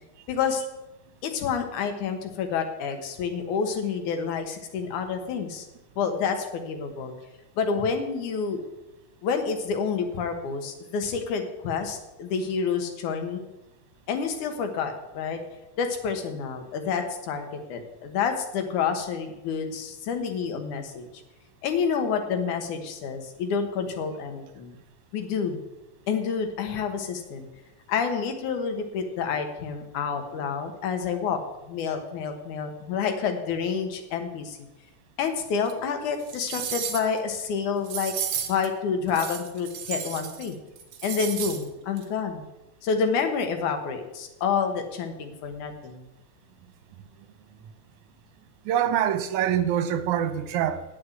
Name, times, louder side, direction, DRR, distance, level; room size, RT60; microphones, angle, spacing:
voice 1, 0.3-0.6 1.2-5.7 6.0-7.1 7.6-8.6 9.2-13.4 14.1-15.4 15.8-21.1 21.6-24.8 25.1-25.6 26.1-27.5 27.9-31.4 31.7-34.6 35.2-38.1 38.5-40.6 41.0-42.5 42.8-46.1, left 6 dB, 80° left, 2.7 m, -28 dB
sound 1, 35.7-35.8 36.2-37.2 37.8-38.7 39.1-40.5 40.8-41.6 42.0-42.1, right 8 dB, 60° right, 1.8 m, -33 dB
voice 2, 48.7-50.8, right 10 dB, 80° right, 2.2 m, -25 dB
9.1 x 7.8 x 8.1 m
omnidirectional pair, 3.4 m